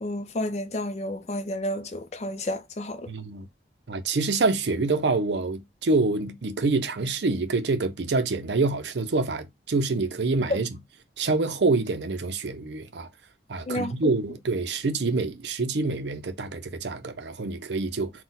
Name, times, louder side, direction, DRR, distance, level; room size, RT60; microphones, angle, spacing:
voice 1, 0.0-3.0 13.7-14.1, left 1 dB, 35° left, 0.5 m, -31 dB
voice 2, 3.1-3.5 3.9-10.8 11.2-13.1 13.5-18.1, right 3 dB, 75° right, 0.6 m, -26 dB
4.1 x 2.3 x 3.9 m
head